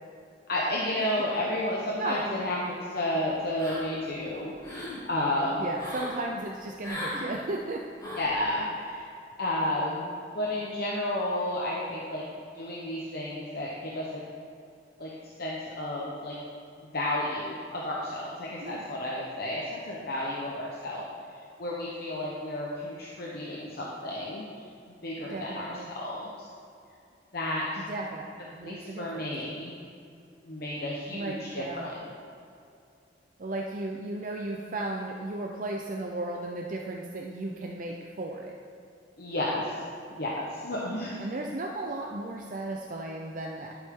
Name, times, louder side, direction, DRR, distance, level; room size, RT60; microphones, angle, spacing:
voice 1, 0.5-5.7 8.1-9.1 9.4-10.1 10.3-12.2 12.5-14.2 15.0-15.1 15.4-16.4 16.9-21.0 21.6-24.4 24.9-26.5 27.3-27.7 28.6-29.7 30.4-32.1 39.2-39.8 40.1-41.2, left 1 dB, 60° left, -4 dB, 1.0 m, -32 dB
voice 2, 2.0-2.3 5.4-7.9 18.6-18.9 25.3-25.9 27.8-29.2 31.1-32.0 33.4-38.5 41.2-43.8, right 2 dB, 45° right, 0 dB, 0.6 m, -35 dB
sound 1, 3.6-4.1 4.5-5.0 5.8-6.2 6.8-7.3 8.0-8.4, left 1 dB, 20° left, 2.0 m, -37 dB
11.5 x 7.3 x 3.8 m, 2.5 s
head